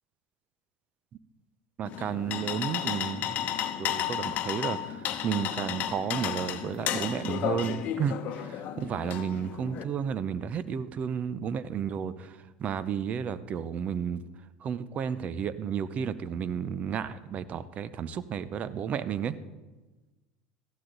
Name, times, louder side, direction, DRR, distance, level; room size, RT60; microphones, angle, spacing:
sound 1, 1.8-9.8, left 10 dB, 50° left, 0.9 m, -33 dB
voice 1, 1.8-3.5 3.8-14.2 14.6-19.4, right 8 dB, 40° right, 16 dB, 0.7 m, -32 dB
14.5 x 11.5 x 3.9 m, 1.2 s
hypercardioid pair, 85°, 4 cm